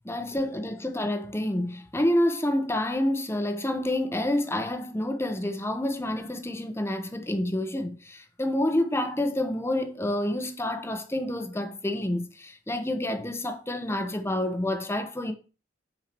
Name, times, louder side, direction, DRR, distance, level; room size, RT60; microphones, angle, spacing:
voice 1, 0.0-15.3, left 1 dB, 15° left, 1.1 m, -28 dB
9.4 x 4.7 x 6.0 m
head